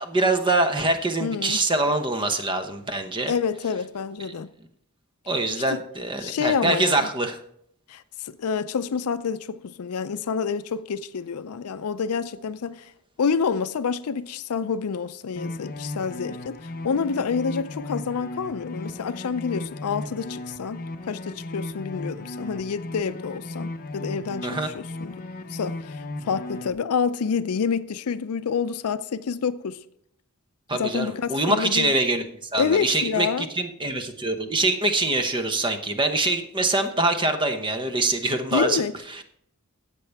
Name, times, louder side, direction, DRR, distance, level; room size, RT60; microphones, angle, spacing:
voice 1, 0.0-3.3 4.2-4.3 5.3-7.4 24.4-24.7 30.7-38.8 39.1-39.2, right 2 dB, 20° right, 0.9 m, -24 dB
voice 2, 1.2-1.6 3.3-4.5 5.7-5.8 6.2-7.1 7.9-12.8 13.2-25.1 25.5-26.0 26.2-29.8 30.7-31.9 32.6-33.5 38.5-38.9, left 6 dB, 70° left, 0.5 m, -28 dB
sound 1, 15.4-26.7, left 2 dB, 40° left, 0.7 m, -36 dB
13.5 x 8.3 x 3.4 m
head